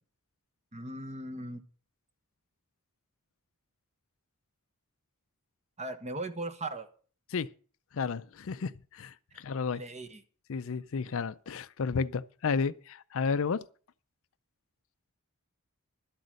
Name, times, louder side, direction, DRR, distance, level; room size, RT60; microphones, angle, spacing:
voice 1, 0.7-1.6 5.8-6.9 9.7-10.2, right 2 dB, 30° right, 1.2 m, -38 dB
voice 2, 7.9-9.8 10.5-13.6, left 5 dB, 60° left, 0.5 m, -32 dB
12.0 x 8.1 x 6.4 m
head